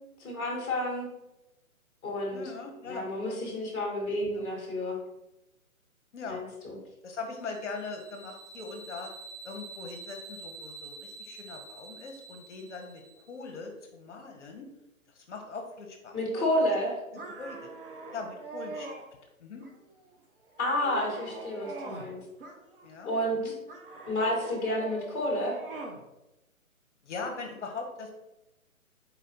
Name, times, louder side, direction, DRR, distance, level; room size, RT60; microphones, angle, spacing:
voice 1, 0.2-1.1 2.0-2.4 2.8-5.0 6.3-6.8 16.1-16.9 20.6-22.2 23.0-23.5 24.1-25.6, left 1 dB, 10° left, -2 dB, 0.9 m, -30 dB
voice 2, 2.3-3.1 4.3-4.5 6.1-6.5 7.0-9.1 9.4-14.7 15.1-16.5 17.1-17.7 18.1-19.0 19.4-19.6 22.8-23.1 23.4-23.5 27.0-28.1, left 4 dB, 55° left, 3 dB, 0.7 m, -41 dB
sound 1, 7.4-13.4, right 3 dB, 5° right, 1.2 m, -47 dB
sound 2, 17.1-19.0 19.6-20.1 20.5-22.1 22.4-23.1 23.7-26.0, right 2 dB, 40° right, 0.7 m, -43 dB
4.1 x 2.5 x 4.1 m, 0.93 s
figure-of-eight pair, 145°, 43 cm